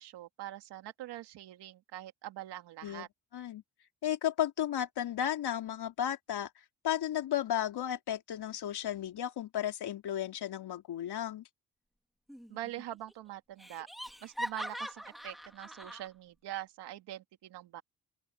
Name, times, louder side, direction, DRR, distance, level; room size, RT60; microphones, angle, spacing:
voice 1, 0.0-3.1 12.5-13.9 14.2-17.8, right 13 dB, 85° right, 2.1 m, -44 dB
voice 2, 3.3-3.6 4.0-6.5 6.8-11.4, left 11 dB, 75° left, 3.5 m, -34 dB
Laughter, 12.3-12.8 13.1-13.2 13.6-16.1, equal, ahead, 2.2 m, -42 dB
open air
cardioid pair, 65°, 39 cm